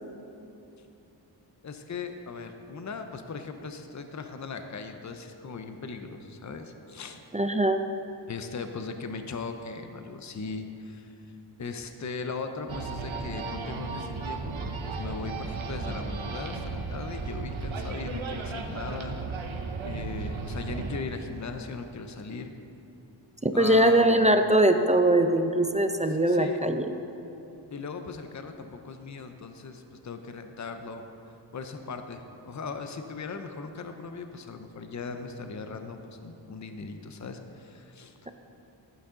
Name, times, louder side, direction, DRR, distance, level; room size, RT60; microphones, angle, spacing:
voice 1, 1.6-7.2 8.3-11.1 11.6-14.5 14.8-19.2 19.8-22.5 23.5-24.3 26.2-26.6 27.7-31.1 31.5-38.1, left 4 dB, 40° left, 7 dB, 0.7 m, -38 dB
voice 2, 7.3-7.8 23.4-26.9, right 1 dB, 15° right, 7 dB, 0.5 m, -22 dB
sound 1, 12.7-21.0, right 4 dB, 85° right, 0.9 m, -35 dB
11.5 x 9.5 x 3.8 m, 2.8 s
wide cardioid pair, 65°, 46 cm